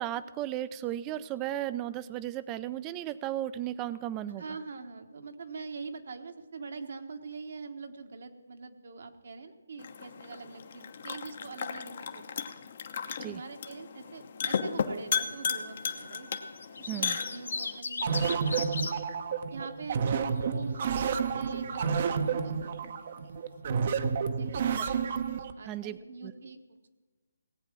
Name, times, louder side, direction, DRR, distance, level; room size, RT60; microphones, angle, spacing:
voice 1, 0.0-4.4 13.2-13.4 16.9-17.2 24.8-24.9 25.7-26.0 26.2-26.3, right 12 dB, 20° right, 15 dB, 0.5 m, -35 dB
voice 2, 4.4-12.4 13.2-16.3 16.8-18.6 18.9-19.0 19.5-22.9 24.4-25.0 25.6-26.9, right 4 dB, 60° right, 6 dB, 1.3 m, -44 dB
sound 1, 9.8-17.8, left 6 dB, 50° left, 1.0 m, -35 dB
sound 2, 16.4-18.9 20.2-20.6, left 4 dB, 70° left, 1.2 m, -36 dB
sound 3, 18.0-25.5, right 6 dB, 45° right, 0.8 m, -30 dB
18.0 x 8.2 x 6.0 m, 1.3 s
hypercardioid pair, 155°, 0 cm